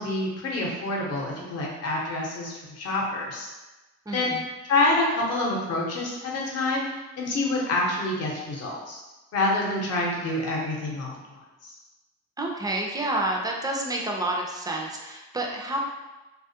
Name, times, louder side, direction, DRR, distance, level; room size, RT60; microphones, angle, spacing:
voice 1, 0.0-3.5 4.1-4.3 4.7-6.8 7.2-9.0 9.3-11.7, left 2 dB, 55° left, -2 dB, 0.7 m, -27 dB
voice 2, 4.1-4.4 12.4-15.8, right 1 dB, 15° right, -1 dB, 0.4 m, -29 dB
2.3 x 2.0 x 2.7 m, 1.1 s
cardioid pair, 90°, 30 cm